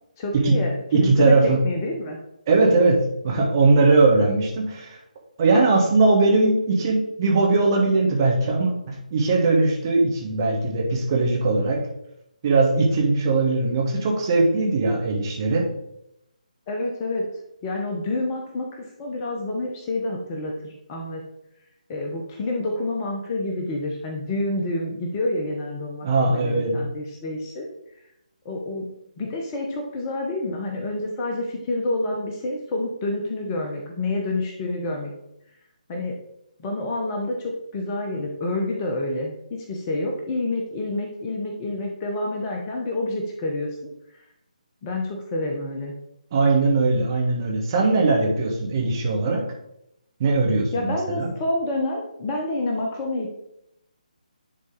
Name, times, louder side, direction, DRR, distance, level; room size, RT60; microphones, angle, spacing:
voice 1, 0.2-2.2 16.7-17.3 17.6-21.2 21.9-27.7 28.0-28.1 28.4-28.9 29.2-35.1 35.9-36.1 36.6-43.8 44.1-44.2 44.8-45.9 50.7-53.3, left 2 dB, 20° left, 1 dB, 0.9 m, -28 dB
voice 2, 0.9-1.6 2.5-5.0 5.4-11.8 12.4-15.7 26.0-26.7 46.3-49.4 50.2-51.3, right 3 dB, 30° right, -1 dB, 1.8 m, -20 dB
10.5 x 3.9 x 4.0 m, 0.81 s
figure-of-eight pair, 145°, 4 cm